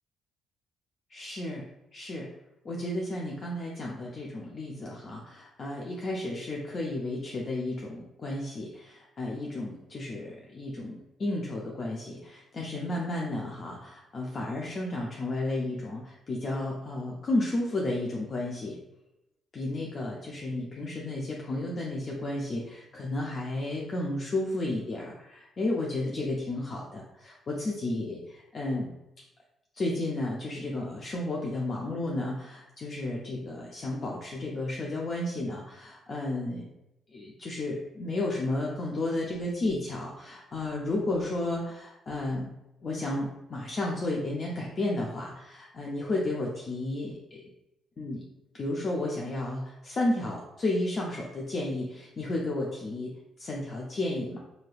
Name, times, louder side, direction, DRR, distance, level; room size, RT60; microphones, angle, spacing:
voice 1, 1.1-1.7 1.9-2.3 2.6-18.8 19.5-28.9 29.7-36.7 37.1-42.5 42.8-47.4 48.0-48.2 48.5-53.1 53.4-54.4, left 2 dB, 45° left, -2 dB, 0.4 m, -32 dB
3.1 x 2.7 x 2.4 m, 0.91 s
cardioid pair, 85°, 0 cm